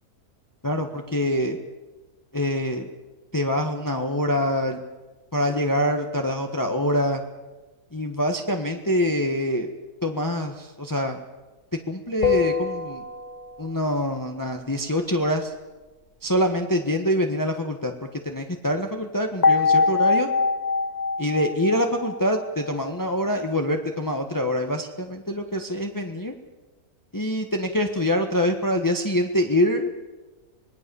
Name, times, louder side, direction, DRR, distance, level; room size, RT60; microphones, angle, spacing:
voice 1, 0.6-1.6 2.3-2.9 3.3-4.8 5.3-7.2 7.9-9.7 10.0-11.2 11.9-13.0 13.6-15.5 16.2-20.3 21.2-26.4 27.1-29.9, equal, 15° left, 4 dB, 1.4 m, -25 dB
sound 1, 12.2-13.8 19.4-22.8, left 4 dB, 30° left, 1.1 m, -23 dB
26.0 x 20.5 x 7.0 m, 1.2 s
omnidirectional pair, 1.6 m